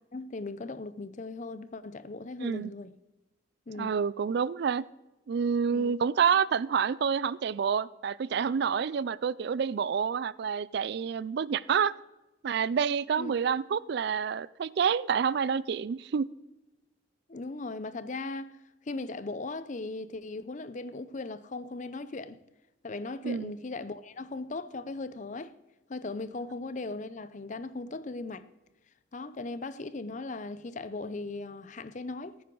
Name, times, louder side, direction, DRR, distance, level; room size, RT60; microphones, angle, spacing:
voice 1, 0.1-3.0 3.7-4.0 5.7-6.0 13.2-13.3 17.3-18.5 18.9-22.4 22.8-25.5 25.9-28.5 29.1-32.4, left 3 dB, 40° left, 0.5 m, -38 dB
voice 2, 3.8-4.8 5.3-11.9 12.4-16.3 23.2-23.5, right 6 dB, 55° right, 0.3 m, -28 dB
15.0 x 9.4 x 3.9 m
head